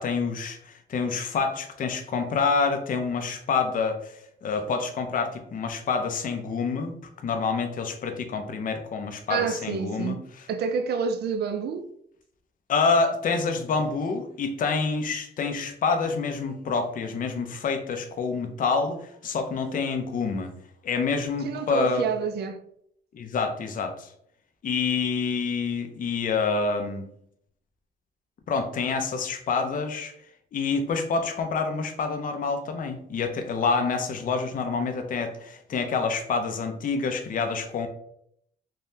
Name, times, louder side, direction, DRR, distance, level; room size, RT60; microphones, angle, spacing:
voice 1, 0.0-7.0 7.2-10.2 12.7-20.5 20.8-22.0 23.1-24.1 24.6-27.0 28.5-30.1 30.5-37.9, left 4 dB, 45° left, 0.5 m, -27 dB
voice 2, 9.3-10.2 10.5-11.9 21.4-22.6, right 5 dB, 55° right, 0.4 m, -28 dB
3.5 x 2.2 x 2.6 m
cardioid pair, 90°, 20 cm